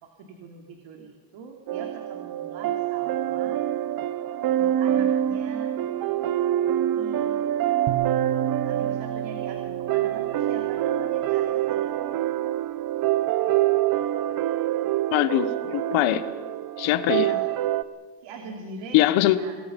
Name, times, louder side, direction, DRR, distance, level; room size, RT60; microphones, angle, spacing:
voice 1, 0.0-3.6 4.5-5.8 6.9-7.7 8.6-11.9 17.2-17.5 18.2-19.1 19.3-19.6, right 4 dB, 65° right, 3 dB, 3.0 m, -43 dB
sound 1, 1.7-17.8, right 12 dB, 45° right, 1.0 m, -26 dB
sound 2, 7.9-11.1, right 13 dB, 85° right, 1.5 m, -35 dB
voice 2, 15.1-16.2 16.8-17.3 18.9-19.4, left 14 dB, 75° left, 11 dB, 1.5 m, -22 dB
27.5 x 21.0 x 5.4 m, 1.5 s
cardioid pair, 125°, 48 cm